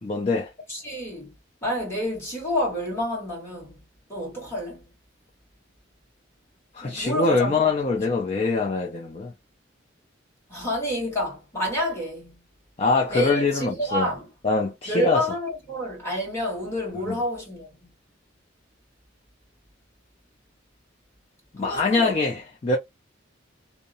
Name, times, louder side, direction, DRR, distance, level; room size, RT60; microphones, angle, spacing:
voice 1, 0.0-0.5 6.7-9.3 12.8-14.1 14.4-15.2 17.1-17.2 21.5-22.8, left 3 dB, 30° left, 0.4 m, -23 dB
voice 2, 0.7-1.3 1.6-3.8 4.1-4.8 6.8-7.7 10.5-12.4 13.1-14.3 14.9-17.9 21.6-22.1, equal, 15° left, 1.5 m, -29 dB
2.7 x 2.0 x 2.6 m
head